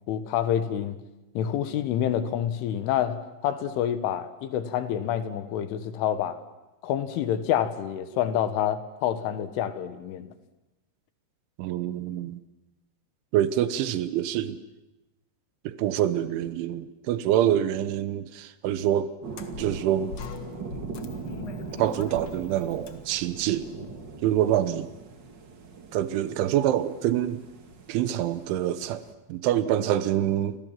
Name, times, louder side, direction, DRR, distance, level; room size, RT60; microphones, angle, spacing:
voice 1, 0.1-1.0 1.4-6.4 6.8-10.3, left 10 dB, 85° left, 11 dB, 4.0 m, -27 dB
voice 2, 11.6-12.4 13.3-14.6 15.7-19.1 19.6-20.2 21.7-23.7 24.2-24.9 25.9-27.4 27.9-30.6, right 11 dB, 80° right, 14 dB, 3.5 m, -26 dB
sound 1, 19.2-29.1, right 4 dB, 60° right, 1.2 m, -41 dB
sound 2, 19.3-24.5, left 5 dB, 65° left, 1.3 m, -43 dB
30.0 x 26.5 x 7.6 m, 0.98 s
omnidirectional pair, 5.5 m